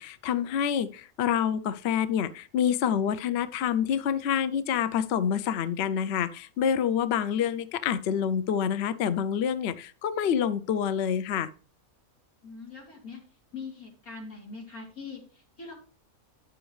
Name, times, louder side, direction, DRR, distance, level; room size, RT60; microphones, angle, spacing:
voice 1, 0.0-11.5, left 8 dB, 60° left, 13 dB, 0.7 m, -27 dB
voice 2, 12.4-13.2 13.5-15.7, left 4 dB, 85° left, -2 dB, 3.7 m, -42 dB
10.0 x 7.0 x 3.2 m, 0.41 s
omnidirectional pair, 1.5 m